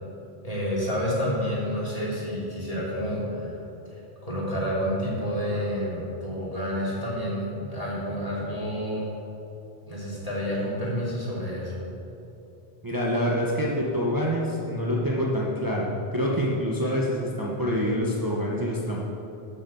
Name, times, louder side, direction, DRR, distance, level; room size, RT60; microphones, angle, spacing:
voice 1, 0.4-3.6 3.8-9.1 9.9-11.8, equal, 35° left, -6 dB, 3.2 m, -29 dB
voice 2, 12.8-19.0, equal, 20° right, -4 dB, 1.1 m, -26 dB
12.0 x 6.9 x 7.1 m, 3.0 s
omnidirectional pair, 1.1 m